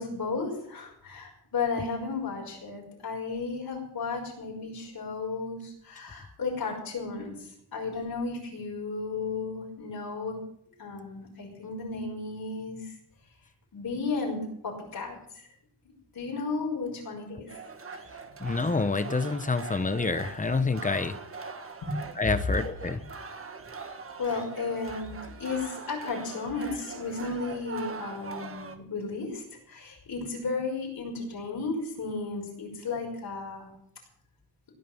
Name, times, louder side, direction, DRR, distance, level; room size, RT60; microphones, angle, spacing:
voice 1, 0.0-10.4 10.8-12.9 13.7-15.5 16.1-17.5 21.8-22.0 24.2-33.7, left 4 dB, 55° left, -1 dB, 5.5 m, -34 dB
sound 1, 17.5-28.8, right 4 dB, 30° right, 1.5 m, -42 dB
voice 2, 18.4-21.2 22.2-23.0, left 3 dB, 20° left, 12 dB, 1.0 m, -27 dB
17.0 x 9.4 x 7.1 m, 0.68 s
wide cardioid pair, 155°, 42 cm